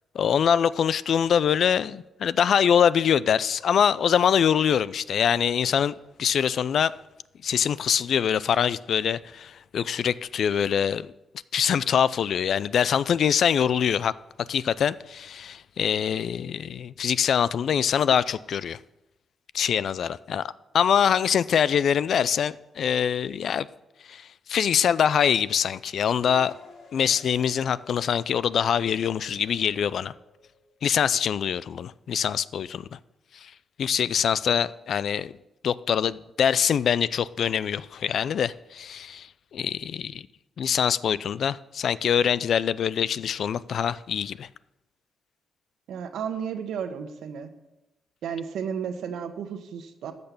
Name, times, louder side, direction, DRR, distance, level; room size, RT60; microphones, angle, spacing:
voice 1, 0.1-7.0 7.4-11.1 11.5-14.1 14.5-18.8 19.5-23.7 24.1-26.5 26.9-30.1 30.8-33.0 33.3-33.5 33.8-35.3 35.6-40.2 40.6-44.5, left 8 dB, 65° left, 0.4 m, -24 dB
sound 1, 26.2-31.0, left 3 dB, 50° left, 5.5 m, -52 dB
voice 2, 45.9-47.5 48.2-50.1, right 7 dB, 85° right, 1.2 m, -33 dB
13.5 x 6.7 x 6.8 m
cardioid pair, 110°, 0 cm